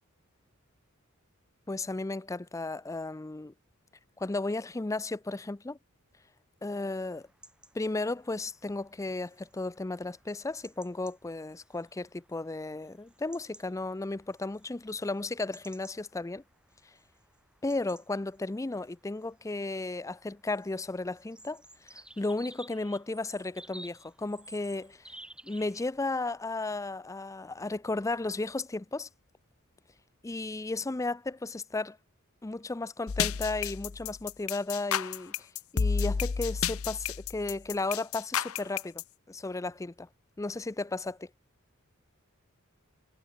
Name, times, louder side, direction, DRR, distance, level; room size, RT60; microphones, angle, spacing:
voice 1, 1.7-3.5 4.2-5.8 6.6-7.3 7.7-16.4 17.6-25.0 25.4-29.1 30.2-32.0 32.4-35.3 35.7-39.0 39.3-40.1 40.4-41.3, left 2 dB, 15° left, 0.4 m, -34 dB
sound 1, 7.1-26.2, right 1 dB, 5° right, 4.2 m, -55 dB
sound 2, 33.1-39.0, left 6 dB, 75° left, 0.7 m, -31 dB
head